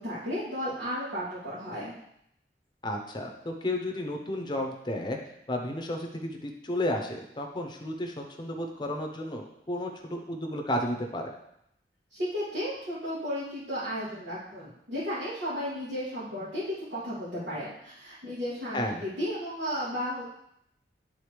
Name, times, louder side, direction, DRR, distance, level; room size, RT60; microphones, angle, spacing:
voice 1, 0.0-1.9 12.1-20.3, equal, 80° right, -14 dB, 2.7 m, -34 dB
voice 2, 2.8-5.2 5.5-11.3 18.7-19.0, left 1 dB, 25° left, 2 dB, 0.8 m, -32 dB
11.0 x 3.9 x 3.3 m, 0.77 s
head